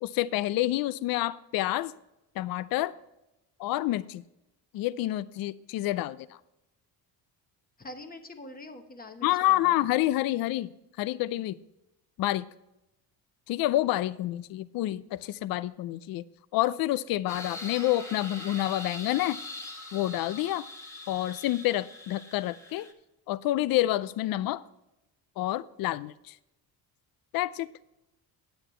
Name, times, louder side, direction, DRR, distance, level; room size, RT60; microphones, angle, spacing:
voice 1, 0.0-1.9 2.4-2.9 3.6-4.2 4.7-6.2 9.2-10.7 11.0-11.6 12.2-12.5 13.5-16.2 16.5-19.4 19.9-20.7 21.1-22.9 23.3-24.6 25.4-26.3 27.3-27.7, left 15 dB, 60° left, 16 dB, 0.5 m, -28 dB
voice 2, 7.8-9.7, left 2 dB, 20° left, 5 dB, 1.1 m, -44 dB
sound 1, 17.3-22.9, left 2 dB, 5° left, 1.4 m, -42 dB
9.2 x 8.8 x 4.4 m, 0.90 s
cardioid pair, 115°, 39 cm